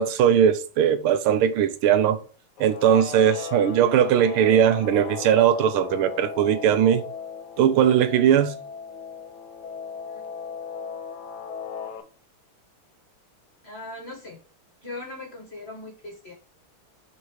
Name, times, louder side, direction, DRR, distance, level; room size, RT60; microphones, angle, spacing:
voice 1, 0.0-2.2 2.6-7.0 7.6-8.5, right 9 dB, 80° right, 1.6 m, -19 dB
Guitar, 2.6-12.0, left 6 dB, 60° left, 1.3 m, -37 dB
voice 2, 13.6-14.4 14.8-16.3, left 2 dB, 30° left, 1.9 m, -39 dB
7.3 x 4.0 x 3.2 m
omnidirectional pair, 2.4 m